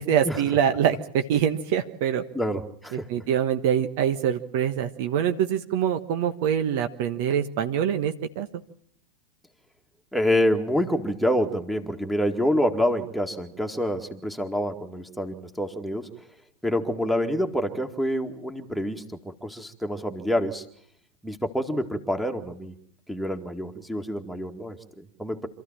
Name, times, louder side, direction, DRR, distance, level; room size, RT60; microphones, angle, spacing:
voice 1, 0.0-2.2 3.1-8.5, right 9 dB, 50° right, 8 dB, 1.3 m, -24 dB
voice 2, 2.3-3.1 10.1-16.1 16.6-20.6 21.2-22.8 23.1-25.5, equal, ahead, 5 dB, 2.1 m, -27 dB
27.0 x 14.5 x 8.7 m, 0.69 s
figure-of-eight pair, 90°, 0 cm